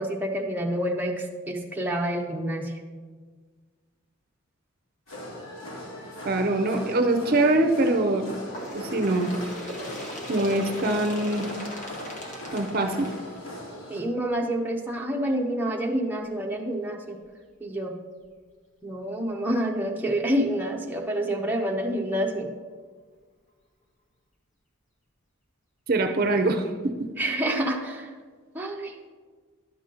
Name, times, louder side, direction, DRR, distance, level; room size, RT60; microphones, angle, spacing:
voice 1, 0.0-2.7 13.9-17.2 17.6-17.9 18.8-22.5 27.2-28.1 28.5-29.1, right 1 dB, 10° right, -1 dB, 0.8 m, -28 dB
sound 1, 5.1-14.0, equal, 90° left, 2.5 m, -40 dB
voice 2, 6.2-8.3 8.7-9.3 10.3-11.5 12.5-13.1 25.9-26.9, right 2 dB, 45° right, 5 dB, 0.6 m, -23 dB
Bird, 8.5-13.9 14.8-14.9 15.3-15.4 16.2-16.3 17.2-17.3 18.2-18.3, equal, 40° left, 1.5 m, -38 dB
10.5 x 7.1 x 3.8 m, 1.5 s
head